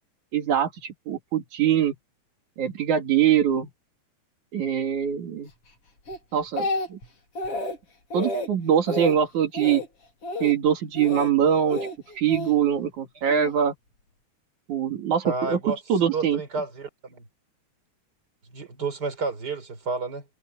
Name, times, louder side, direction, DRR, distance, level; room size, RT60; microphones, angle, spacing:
voice 1, 0.3-0.7 1.1-1.9 2.6-3.7 4.5-5.5 6.3-7.0 8.1-9.8 10.4-11.9 12.2-13.7 14.7-16.4, right 9 dB, 85° right, 3.7 m, -23 dB
Speech, 6.1-7.1 7.4-7.8 8.1-8.5 8.9-9.2 9.5-9.9 10.2-10.5 11.0-11.3 11.7-12.5 13.3-13.5, left 2 dB, 50° left, 5.1 m, -30 dB
voice 2, 15.2-15.8 16.1-17.2 18.5-20.2, right 4 dB, 35° right, 4.7 m, -30 dB
omnidirectional pair, 3.3 m